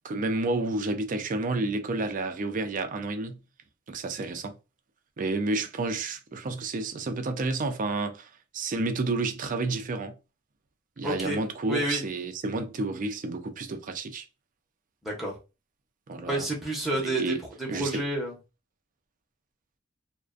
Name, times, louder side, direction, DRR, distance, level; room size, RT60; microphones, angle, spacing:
voice 1, 0.0-3.4 3.9-4.6 5.2-10.2 11.0-14.2 16.1-16.5 16.9-17.4 17.7-18.0, right 3 dB, 40° right, 0.4 m, -30 dB
voice 2, 11.0-12.0 15.0-15.4 16.3-18.3, right 1 dB, ahead, 0.7 m, -30 dB
2.4 x 2.1 x 2.4 m
head